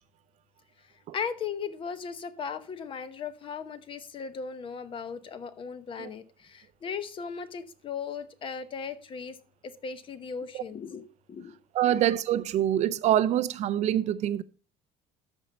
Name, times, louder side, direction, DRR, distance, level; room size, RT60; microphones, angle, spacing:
voice 1, 1.1-9.4 9.6-11.6 11.9-12.0, left 6 dB, 35° left, 0.9 m, -37 dB
voice 2, 11.7-14.4, right 11 dB, 50° right, 0.5 m, -25 dB
13.0 x 5.4 x 4.1 m
cardioid pair, 150°, 15 cm